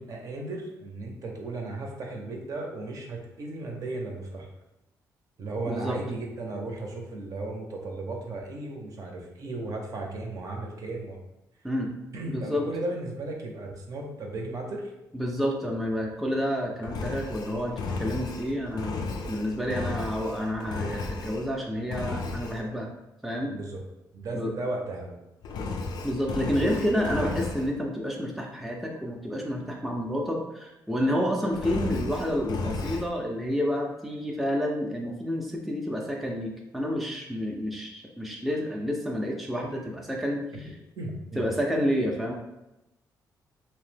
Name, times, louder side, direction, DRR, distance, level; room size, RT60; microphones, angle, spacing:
voice 1, 0.0-4.5 5.4-11.2 12.1-14.9 23.5-23.8 24.1-25.1 41.0-41.4, right 2 dB, 55° right, 1 dB, 0.6 m, -35 dB
voice 2, 5.7-6.0 11.6-11.9 12.3-12.7 15.1-22.9 23.2-23.5 24.3-24.5 26.0-40.7 41.4-42.3, equal, ahead, -1 dB, 0.4 m, -29 dB
Engine, 16.8-21.5 21.9-22.6 25.4-27.7 31.5-33.1, left 3 dB, 75° left, 0.4 m, -34 dB
2.8 x 2.0 x 3.2 m, 0.93 s
cardioid pair, 100°, 7 cm